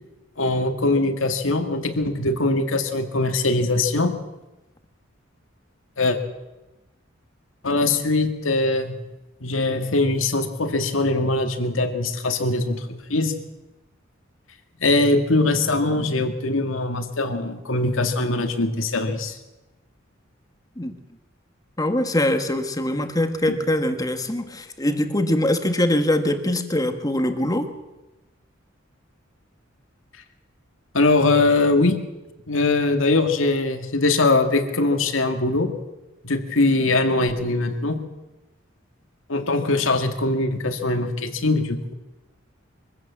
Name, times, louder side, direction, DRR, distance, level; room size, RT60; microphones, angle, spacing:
voice 1, 0.4-4.2 6.0-6.2 7.6-9.0 9.4-13.3 14.8-19.4 23.5-23.6 30.9-32.0 32.5-35.7 36.2-38.0 39.3-41.9, left 2 dB, 80° left, 6 dB, 2.1 m, -22 dB
voice 2, 21.8-27.7, left 1 dB, 20° left, 7 dB, 1.6 m, -23 dB
23.5 x 15.5 x 7.5 m, 1.0 s
head